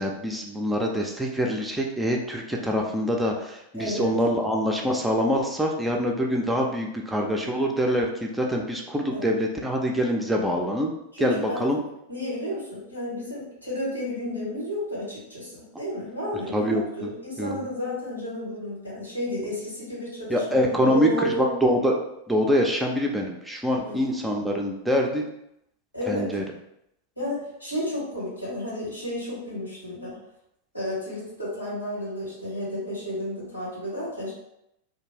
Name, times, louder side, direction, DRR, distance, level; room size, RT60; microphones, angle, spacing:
voice 1, 0.0-10.9 11.2-11.8 16.5-17.1 17.4-17.6 20.3-22.0 22.3-25.2 26.1-26.4, equal, 5° right, 0 dB, 0.4 m, -25 dB
voice 2, 3.7-4.1 9.1-9.3 11.1-11.7 12.1-21.5 23.8-24.1 25.9-26.3 27.2-30.2 30.7-34.3, left 1 dB, 90° left, -6 dB, 1.2 m, -32 dB
2.5 x 2.2 x 3.2 m, 0.81 s
figure-of-eight pair, 90°, 0 cm